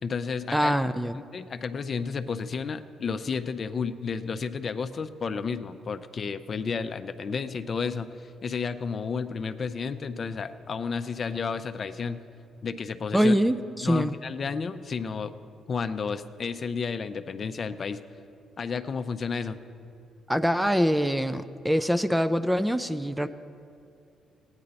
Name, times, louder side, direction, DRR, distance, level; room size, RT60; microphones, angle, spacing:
voice 1, 0.0-0.8 1.2-12.2 12.6-13.4 13.8-15.4 15.7-18.0 18.6-19.6, left 5 dB, 45° left, 10 dB, 0.5 m, -32 dB
voice 2, 0.5-1.1 13.1-14.1 20.3-23.3, equal, 5° right, 11 dB, 0.4 m, -24 dB
17.0 x 9.7 x 4.0 m, 2.5 s
cardioid pair, 90°, 0 cm